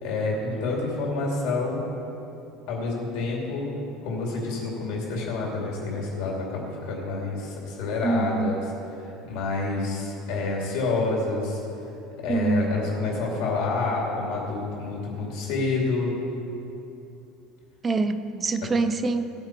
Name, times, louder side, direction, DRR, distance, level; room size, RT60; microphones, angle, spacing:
voice 1, 0.0-1.8 2.7-3.7 4.0-11.6 12.2-16.1 18.6-18.7, left 3 dB, 60° left, -2 dB, 2.7 m, -28 dB
voice 2, 8.0-8.5 12.3-12.7 17.8-19.3, right 3 dB, 15° right, 10 dB, 0.5 m, -25 dB
17.0 x 8.9 x 4.6 m, 2.8 s
cardioid pair, 170°, 0 cm